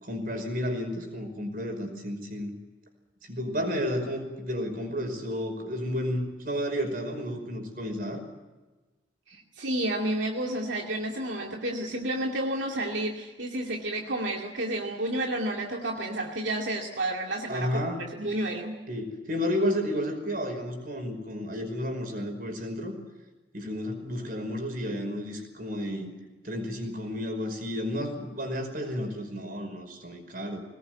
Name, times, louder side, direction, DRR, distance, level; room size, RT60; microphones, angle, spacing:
voice 1, 0.0-2.5 3.3-8.2 17.5-18.0 18.9-22.9 23.5-26.1 26.4-30.6, equal, 50° right, 5 dB, 5.4 m, -32 dB
voice 2, 9.3-17.8 18.2-18.8, right 1 dB, 85° right, 0 dB, 2.4 m, -31 dB
22.5 x 19.5 x 9.4 m, 1.2 s
head